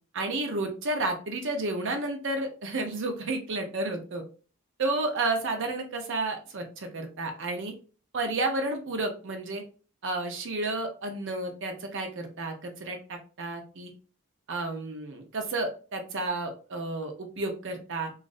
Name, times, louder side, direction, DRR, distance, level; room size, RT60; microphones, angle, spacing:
voice 1, 0.1-4.2 4.8-7.7 8.1-9.6 10.0-13.9 14.5-18.1, right 2 dB, 60° right, 4 dB, 0.7 m, -31 dB
3.1 x 2.4 x 2.4 m, 0.36 s
head